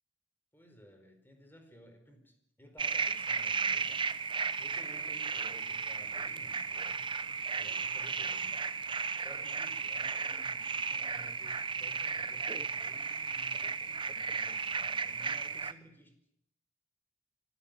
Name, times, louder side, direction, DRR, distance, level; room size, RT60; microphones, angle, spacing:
voice 1, 0.5-4.1 4.6-7.1 7.5-8.6 9.2-16.2, equal, 10° left, 5 dB, 4.6 m, -56 dB
sound 1, 2.8-15.7, right 5 dB, 25° right, 0.8 m, -34 dB
25.0 x 14.0 x 9.3 m, 0.74 s
head